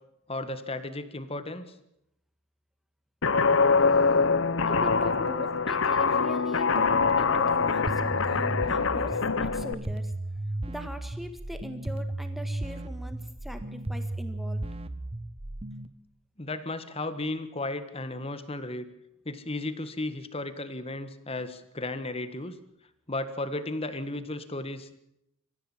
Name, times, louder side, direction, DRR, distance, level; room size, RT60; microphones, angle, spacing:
voice 1, 0.3-1.7 16.4-18.9 19.2-22.6 23.1-24.9, left 2 dB, 25° left, 11 dB, 1.6 m, -34 dB
Guitar, 3.2-9.7, left 4 dB, 60° left, 0.9 m, -24 dB
voice 2, 4.7-10.1 10.7-14.6, equal, ahead, 7 dB, 1.6 m, -41 dB
sound 1, 7.9-15.9, right 1 dB, 25° right, 1.0 m, -35 dB
25.0 x 15.5 x 7.4 m, 0.80 s
head